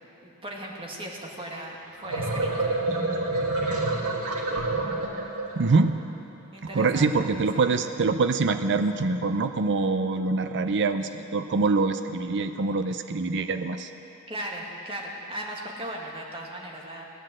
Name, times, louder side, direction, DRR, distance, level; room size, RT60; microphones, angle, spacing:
voice 1, 0.2-2.7 6.5-7.3 7.5-7.7 14.3-17.0, right 1 dB, 25° right, -2 dB, 2.0 m, -37 dB
sound 1, 1.8-5.7, right 2 dB, 80° right, 1.8 m, -28 dB
voice 2, 5.6-6.0 6.7-13.9, right 3 dB, 55° right, 8 dB, 0.6 m, -24 dB
16.5 x 10.0 x 7.7 m, 2.9 s
head